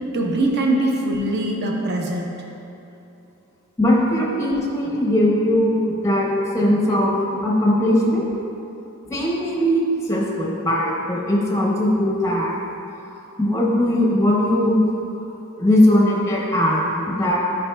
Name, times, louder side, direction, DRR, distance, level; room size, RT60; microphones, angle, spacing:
voice 1, 0.1-2.3, right 1 dB, 50° right, 0 dB, 0.7 m, -22 dB
voice 2, 3.8-7.1 7.4-8.3 9.1-12.6 13.4-14.8 15.6-17.4, left 1 dB, 15° left, -3 dB, 0.6 m, -19 dB
8.9 x 5.0 x 2.2 m, 2.8 s
head